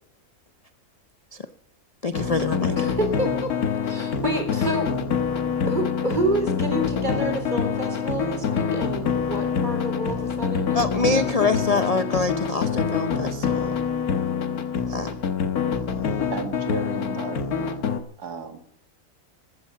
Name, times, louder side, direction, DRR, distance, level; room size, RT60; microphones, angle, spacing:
voice 1, 2.0-2.9 10.7-13.7 14.9-15.2 16.0-16.1, left 3 dB, 50° left, 11 dB, 0.4 m, -25 dB
sound 1, 2.1-18.0, left 6 dB, 70° left, 1.8 m, -26 dB
voice 2, 2.8-3.5 3.8-4.9 5.7-12.2, right 1 dB, 30° right, 6 dB, 3.7 m, -29 dB
voice 3, 16.3-17.8 18.2-18.6, right 4 dB, 90° right, 7 dB, 2.2 m, -34 dB
15.0 x 14.0 x 5.8 m, 0.68 s
omnidirectional pair, 1.6 m